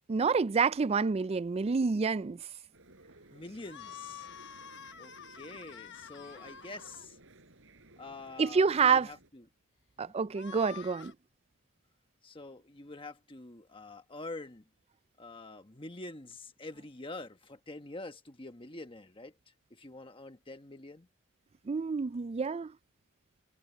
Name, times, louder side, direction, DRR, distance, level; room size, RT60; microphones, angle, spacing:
voice 1, 0.1-2.4 8.4-9.1 10.0-11.1 21.7-22.7, right 5 dB, 25° right, 0.3 m, -28 dB
sound 1, 2.7-9.3, right 2 dB, 60° right, 4.4 m, -58 dB
voice 2, 3.3-4.3 5.0-7.2 8.0-9.5 10.0-10.1 12.2-14.7 15.2-19.3 19.7-21.1, left 2 dB, 25° left, 1.3 m, -46 dB
sound 2, 3.6-7.0 10.3-11.1, left 8 dB, 55° left, 1.1 m, -48 dB
head